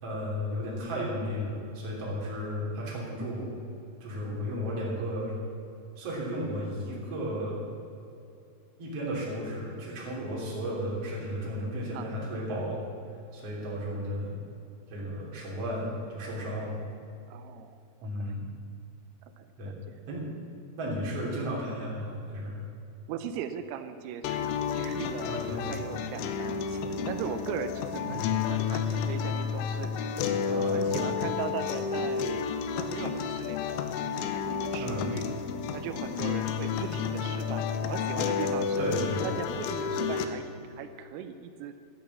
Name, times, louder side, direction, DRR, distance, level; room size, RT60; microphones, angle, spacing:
voice 1, 0.0-3.5 4.0-5.3 6.0-7.6 8.8-12.8 13.3-14.4 14.9-16.7 18.0-18.5 19.6-19.7 20.1-20.3 20.8-22.6 25.2-25.8 28.0-28.4 30.5-30.8 34.8-35.1 36.8-36.9 38.8-39.3, equal, 35° right, -5 dB, 3.6 m, -34 dB
voice 2, 11.9-12.6 17.3-18.3 19.4-20.0 23.1-30.2 30.5-35.3 35.7-38.9 39.2-40.5 40.8-41.8, right 9 dB, 90° right, 9 dB, 3.4 m, -39 dB
sound 1, 24.2-40.3, left 6 dB, 80° left, 3.1 m, -31 dB
11.0 x 11.0 x 7.5 m, 2.7 s
omnidirectional pair, 5.9 m